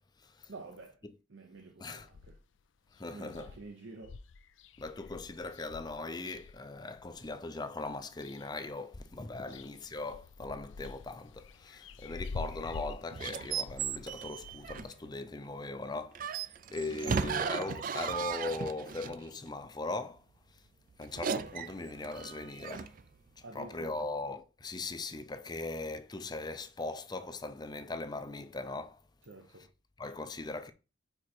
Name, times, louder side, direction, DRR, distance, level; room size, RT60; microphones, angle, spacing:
voice 1, 0.5-1.0 1.3-2.4 3.1-4.2 9.5-9.7 16.9-17.3 23.4-24.1 29.2-29.7, right 3 dB, 75° right, 0.9 m, -49 dB
sound 1, 2.0-2.6 3.0-3.1 3.3-7.3 7.8-8.7 9.0-14.8, left 4 dB, 75° left, 0.4 m, -47 dB
voice 2, 3.0-3.5 4.8-20.2 21.0-22.9 23.4-29.0 30.0-30.7, left 2 dB, 20° left, 0.5 m, -39 dB
sound 2, 13.1-15.1 16.1-19.2 21.0-23.0, right 6 dB, 45° right, 0.4 m, -36 dB
5.0 x 4.7 x 4.4 m
head